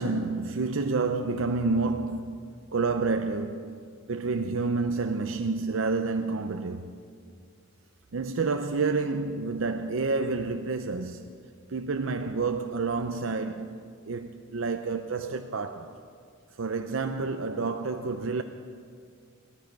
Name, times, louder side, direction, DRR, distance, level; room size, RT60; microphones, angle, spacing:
voice 1, 0.0-2.4 2.7-3.7 4.1-6.9 8.1-11.3 11.7-16.0 16.6-18.4, right 4 dB, 75° right, 0.6 m, -29 dB
17.5 x 13.5 x 5.4 m
head